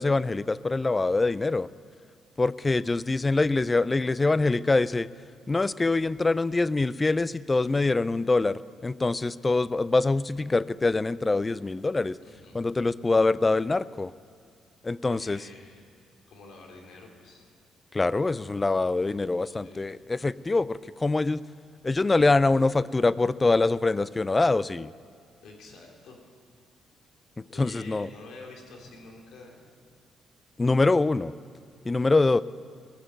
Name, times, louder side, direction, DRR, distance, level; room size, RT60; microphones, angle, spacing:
voice 1, 0.0-1.7 2.4-5.1 5.5-12.2 12.5-14.1 14.8-15.5 17.9-21.4 21.8-24.9 27.4-28.1 30.6-31.3 31.8-32.4, left 3 dB, 20° left, 18 dB, 0.4 m, -24 dB
voice 2, 12.2-12.7 15.0-15.8 16.3-17.4 19.4-20.0 25.4-26.2 27.4-29.6, left 3 dB, 75° left, 1 dB, 3.0 m, -48 dB
19.0 x 7.4 x 9.1 m, 2.2 s
cardioid pair, 90°, 0 cm